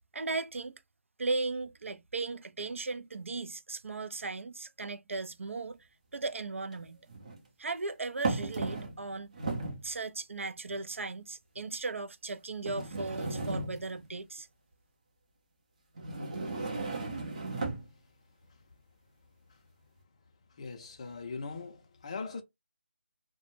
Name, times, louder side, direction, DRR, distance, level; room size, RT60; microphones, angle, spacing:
voice 1, 0.1-0.8 1.2-5.8 6.1-7.0 7.6-9.3 9.8-14.5, right 3 dB, 80° right, 0.4 m, -37 dB
sound 1, 5.2-5.3 6.7-7.4 8.2-9.1 9.3-9.9 10.7-10.8 11.6-11.7 12.7-14.1 16.0-17.9, right 3 dB, 35° right, 0.6 m, -35 dB
voice 2, 20.6-22.4, left 4 dB, 30° left, 0.4 m, -40 dB
2.1 x 2.0 x 3.0 m
figure-of-eight pair, 170°, 7 cm